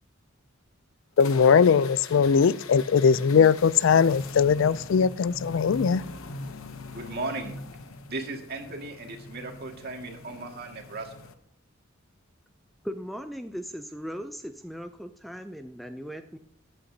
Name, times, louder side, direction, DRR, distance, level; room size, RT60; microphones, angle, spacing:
sound 1, 1.2-11.3, left 2 dB, 90° left, 0.9 m, -42 dB
voice 1, 1.2-6.1, left 6 dB, 65° left, 0.4 m, -20 dB
voice 2, 6.9-7.5 8.1-11.1, right 2 dB, 50° right, 2.0 m, -36 dB
voice 3, 12.8-16.4, equal, ahead, 0.4 m, -38 dB
14.0 x 9.7 x 2.8 m
head